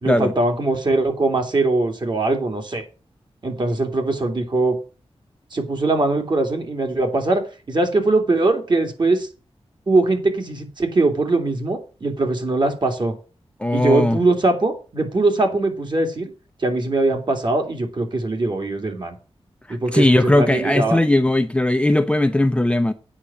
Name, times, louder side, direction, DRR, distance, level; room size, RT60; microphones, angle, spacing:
voice 1, 0.0-2.8 3.4-4.8 5.5-7.4 7.7-9.3 9.9-13.1 13.7-16.3 16.6-19.2 19.7-21.0, right 2 dB, 45° right, 2.7 m, -21 dB
voice 2, 13.6-14.2 19.7-22.9, left 1 dB, 10° left, 0.7 m, -18 dB
8.7 x 6.0 x 7.3 m
wide cardioid pair, 125°, 11 cm